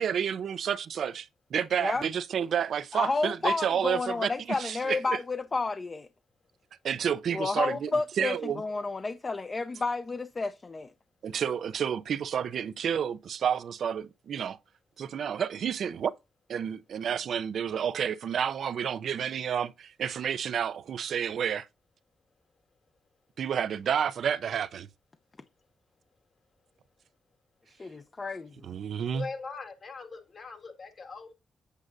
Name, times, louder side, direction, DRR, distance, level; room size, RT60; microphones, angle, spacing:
voice 1, 0.0-5.2 6.8-7.9 8.2-8.6 11.2-14.6 15.0-16.1 16.5-21.7 23.4-24.9 28.6-29.3, right 8 dB, 70° right, 0.5 m, -30 dB
voice 2, 2.9-6.1 7.3-10.9 27.8-28.7, left 3 dB, 40° left, 0.6 m, -31 dB
voice 3, 29.1-31.3, left 4 dB, 55° left, 1.9 m, -41 dB
8.2 x 7.2 x 2.6 m
supercardioid pair, 50°, 0 cm